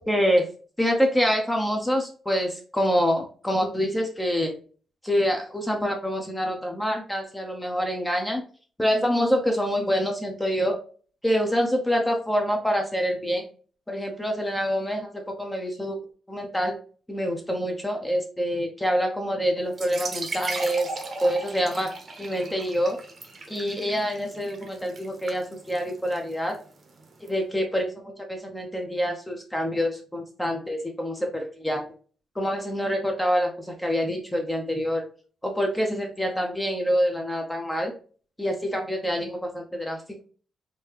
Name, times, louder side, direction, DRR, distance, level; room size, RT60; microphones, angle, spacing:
voice 1, 0.1-0.5 0.8-4.5 5.0-8.4 8.8-10.8 11.2-13.4 13.9-16.0 16.3-16.7 17.1-20.9 21.2-21.9 22.2-23.0 23.5-26.6 27.2-31.8 32.4-35.0 35.4-37.9 38.4-40.2, equal, 5° left, 2 dB, 0.6 m, -26 dB
sound 1, 19.7-27.3, right 3 dB, 40° right, 0.8 m, -38 dB
3.6 x 2.7 x 2.9 m, 0.41 s
cardioid pair, 150°, 0 cm